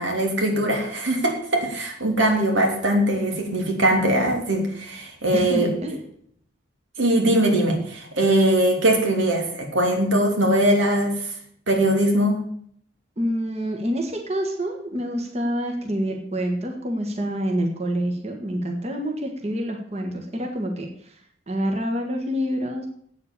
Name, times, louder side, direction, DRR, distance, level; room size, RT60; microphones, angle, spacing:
voice 1, 0.0-5.7 7.0-11.3 11.7-12.4, right 1 dB, 85° right, 2 dB, 3.2 m, -21 dB
voice 2, 5.3-6.0 13.2-22.9, equal, 35° right, 3 dB, 1.5 m, -27 dB
8.7 x 8.1 x 8.3 m, 0.63 s
head